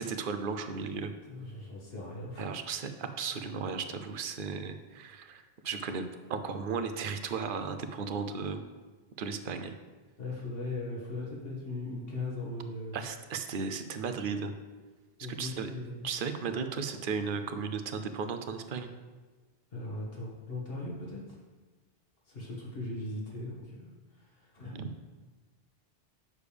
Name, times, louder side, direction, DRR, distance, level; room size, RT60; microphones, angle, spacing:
voice 1, 0.0-1.1 2.4-6.0 6.3-8.6 9.2-9.7 12.9-14.5 15.3-15.7 16.0-18.9 24.7-24.9, right 5 dB, 60° right, 8 dB, 0.8 m, -35 dB
voice 2, 1.3-2.5 10.2-13.0 15.2-16.0 16.5-17.0 19.7-21.4 22.3-23.9 24.2-24.7, left 2 dB, 65° left, -4 dB, 1.9 m, -39 dB
8.3 x 6.6 x 3.4 m, 1.3 s
omnidirectional pair, 1.0 m